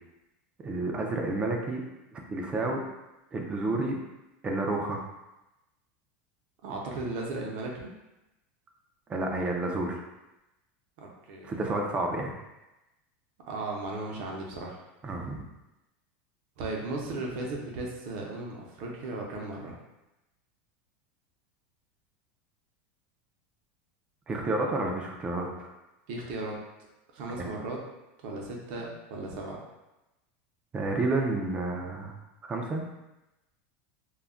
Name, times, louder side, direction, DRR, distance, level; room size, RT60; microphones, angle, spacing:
voice 1, 0.6-1.8 2.1-2.8 3.3-4.0 4.4-5.0 9.1-10.0 11.4-12.3 15.0-15.4 24.3-25.7 27.4-27.5 30.7-32.1 32.4-32.8, right 2 dB, 15° right, 1 dB, 0.3 m, -30 dB
voice 2, 6.6-7.9 11.0-11.5 13.5-14.8 16.6-19.8 26.1-26.6 27.1-27.8 28.2-29.6, right 2 dB, 50° right, -1 dB, 0.6 m, -36 dB
2.2 x 2.1 x 3.6 m, 0.98 s
supercardioid pair, 160°, 7 cm